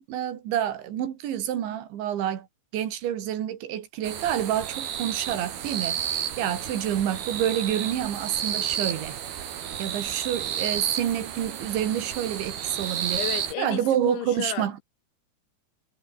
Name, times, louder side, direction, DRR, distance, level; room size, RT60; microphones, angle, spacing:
voice 1, 0.0-2.5 2.7-9.2 9.8-13.2 13.6-14.8, right 10 dB, 80° right, 4.9 m, -28 dB
sound 1, 4.0-13.5, right 9 dB, 60° right, 4.3 m, -32 dB
voice 2, 13.1-14.7, left 12 dB, 80° left, 4.3 m, -33 dB
omnidirectional pair, 5.2 m